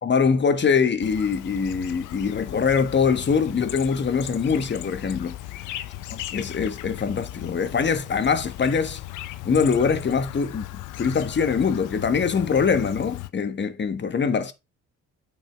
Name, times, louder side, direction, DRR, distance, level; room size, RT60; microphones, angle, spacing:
voice 1, 0.0-5.4 6.1-9.0 9.4-10.6 11.0-14.5, left 5 dB, 35° left, 1.2 m, -23 dB
Chirp tweet, 1.0-13.3, left 14 dB, 90° left, 0.7 m, -37 dB
8.9 x 5.3 x 3.4 m
cardioid pair, 90°, 30 cm